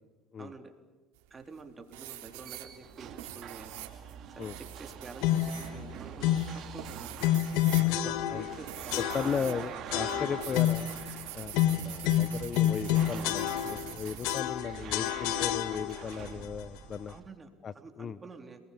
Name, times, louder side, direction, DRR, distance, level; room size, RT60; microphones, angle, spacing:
voice 1, 0.4-0.7 1.3-3.7 4.3-6.3 6.7-7.2 7.8-9.6 17.1-18.6, right 4 dB, 25° right, 6 dB, 3.7 m, -48 dB
sound 1, 1.2-1.6 1.9-9.6 9.9-14.4, right 15 dB, 85° right, 3.5 m, -45 dB
sound 2, 2.1-17.3, right 8 dB, 55° right, 2.7 m, -45 dB
sound 3, 5.2-5.6 6.2-6.6 7.2-8.6 8.9-9.5 9.9-11.0 11.5-13.9 14.2-16.1, left 12 dB, 80° left, 1.5 m, -28 dB
voice 2, 9.1-10.9 11.3-17.1 17.6-18.2, left 7 dB, 35° left, 16 dB, 0.7 m, -36 dB
28.5 x 20.5 x 8.7 m, 1.2 s
supercardioid pair, 100°, 0 cm